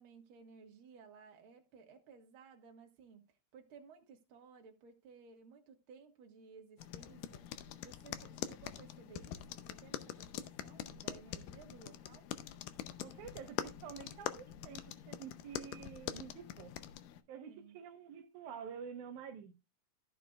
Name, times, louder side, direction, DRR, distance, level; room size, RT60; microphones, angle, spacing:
voice 1, 0.0-7.5 7.8-12.3 17.5-17.8, right 5 dB, 50° right, 1.9 m, -58 dB
sound 1, 6.8-17.2, left 11 dB, 85° left, 2.3 m, -45 dB
voice 2, 13.0-16.7 17.3-19.5, right 7 dB, 70° right, 2.2 m, -48 dB
14.5 x 7.0 x 2.3 m
omnidirectional pair, 3.9 m